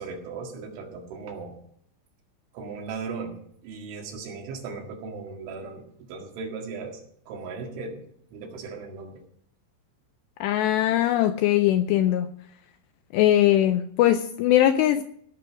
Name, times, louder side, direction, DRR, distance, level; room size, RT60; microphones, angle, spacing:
voice 1, 0.0-1.6 2.5-8.0 8.3-9.2, right 4 dB, 80° right, 1 dB, 4.3 m, -37 dB
voice 2, 10.4-12.3 13.1-15.0, left 12 dB, 85° left, 8 dB, 2.5 m, -21 dB
17.0 x 6.3 x 6.2 m, 0.67 s
omnidirectional pair, 5.5 m